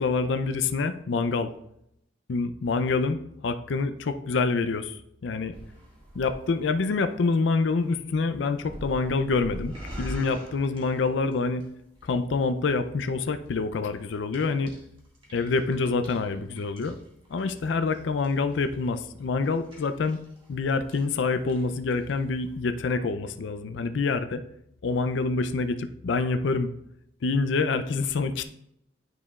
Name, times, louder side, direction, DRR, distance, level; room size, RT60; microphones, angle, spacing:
voice 1, 0.0-1.5 2.3-3.2 3.4-5.5 6.2-11.6 12.0-14.7 15.3-17.0 17.3-20.2 20.5-24.4 24.8-26.7 27.2-28.4, left 4 dB, 70° left, 9 dB, 0.4 m, -26 dB
sound 1, 5.5-11.7 11.9-12.6 13.2-13.5 13.9-20.5 20.8-21.2 21.5-22.1 22.4-22.5, right 1 dB, 30° right, 1.7 m, -43 dB
9.5 x 5.0 x 2.3 m, 0.76 s
head